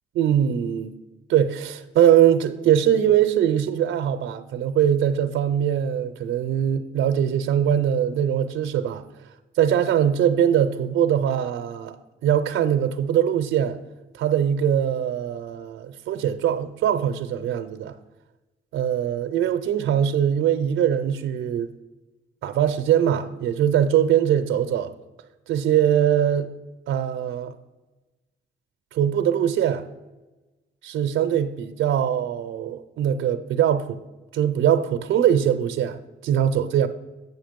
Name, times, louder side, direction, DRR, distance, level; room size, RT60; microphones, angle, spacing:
voice 1, 0.1-1.0 1.3-9.0 9.6-12.0 12.2-13.8 14.1-18.0 18.7-21.7 22.4-24.9 25.5-26.5 26.9-27.5 28.9-29.8 30.8-34.0 34.3-36.9, right 9 dB, 80° right, 0.6 m, -22 dB
8.1 x 5.9 x 5.1 m
cardioid pair, 90°, 20 cm